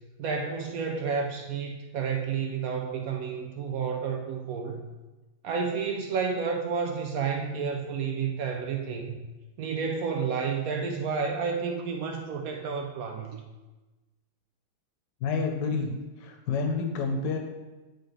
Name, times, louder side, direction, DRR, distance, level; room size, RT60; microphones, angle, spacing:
voice 1, 0.2-4.8 5.4-9.2 9.6-13.5, right 5 dB, 70° right, 3 dB, 0.8 m, -30 dB
voice 2, 15.2-17.4, left 4 dB, 70° left, 4 dB, 1.4 m, -29 dB
9.6 x 4.2 x 3.2 m, 1.2 s
omnidirectional pair, 2.1 m